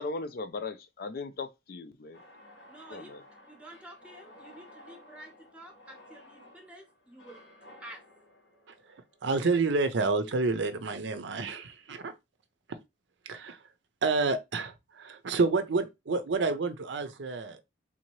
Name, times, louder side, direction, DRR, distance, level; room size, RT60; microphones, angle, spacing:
voice 1, 0.0-2.2 2.9-3.2, left 3 dB, 50° left, 0.4 m, -38 dB
sound 1, 2.1-10.3, left 1 dB, 90° left, 1.8 m, -55 dB
voice 2, 2.7-3.2 3.5-7.4 7.8-8.0, right 1 dB, 5° right, 0.8 m, -50 dB
voice 3, 9.2-12.1 13.3-13.6 14.0-17.6, right 3 dB, 70° right, 0.5 m, -29 dB
3.8 x 2.8 x 3.0 m
head